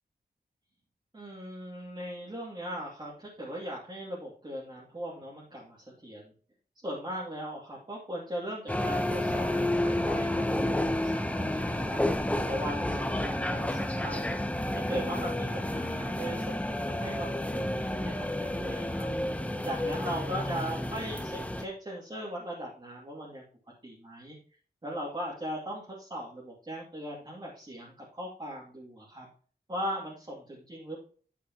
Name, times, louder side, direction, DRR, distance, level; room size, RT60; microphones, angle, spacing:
voice 1, 1.1-5.8 6.0-6.3 6.8-12.0 12.4-14.4 14.9-19.1 19.6-23.4 23.8-24.4 24.8-29.3 29.7-31.0, equal, 30° right, -5 dB, 2.5 m, -39 dB
sound 1, 8.7-21.6, left 1 dB, 10° left, 0.8 m, -30 dB
9.2 x 8.4 x 2.9 m, 0.43 s
wide cardioid pair, 110°, 16 cm